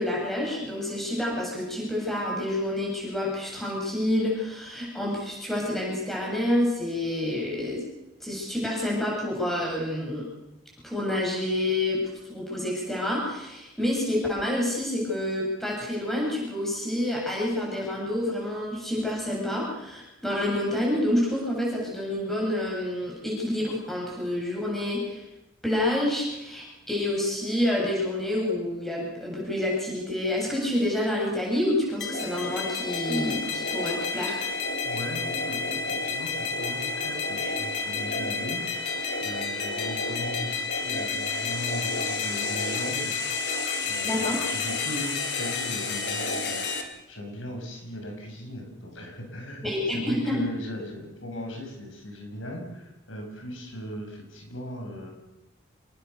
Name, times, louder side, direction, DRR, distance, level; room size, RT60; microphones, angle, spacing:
voice 1, 0.0-7.8 8.2-10.2 10.8-12.0 12.3-25.2 25.6-34.5 44.0-44.4 49.6-50.4, left 1 dB, ahead, -4 dB, 8.0 m, -28 dB
sound 1, 32.0-46.8, left 4 dB, 55° left, 3.2 m, -30 dB
voice 2, 34.8-55.1, equal, 85° left, 2 dB, 7.0 m, -38 dB
26.5 x 20.5 x 7.0 m, 0.94 s
head